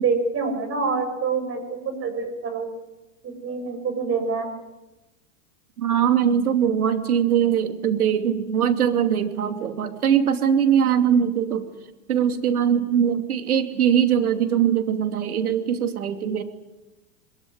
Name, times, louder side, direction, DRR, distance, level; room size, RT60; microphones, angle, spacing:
voice 1, 0.0-2.7 3.2-4.5, right 4 dB, 30° right, 6 dB, 7.4 m, -26 dB
voice 2, 5.8-11.7 12.1-16.4, right 8 dB, 90° right, 7 dB, 3.0 m, -21 dB
22.5 x 22.0 x 9.6 m, 1.0 s
hypercardioid pair, 115°, 43 cm